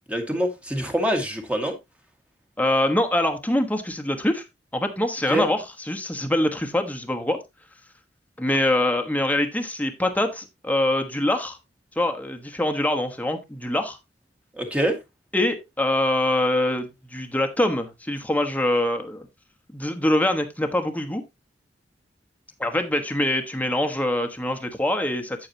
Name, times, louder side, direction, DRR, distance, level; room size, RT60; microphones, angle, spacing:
voice 1, 0.1-1.8 5.3-5.5 14.6-15.0, right 1 dB, 5° right, 1.7 m, -25 dB
voice 2, 2.6-4.4 4.7-7.4 8.4-11.6 12.0-14.0 15.3-19.3 19.7-21.2 22.6-25.5, left 1 dB, 10° left, 1.3 m, -24 dB
8.8 x 8.6 x 2.8 m
head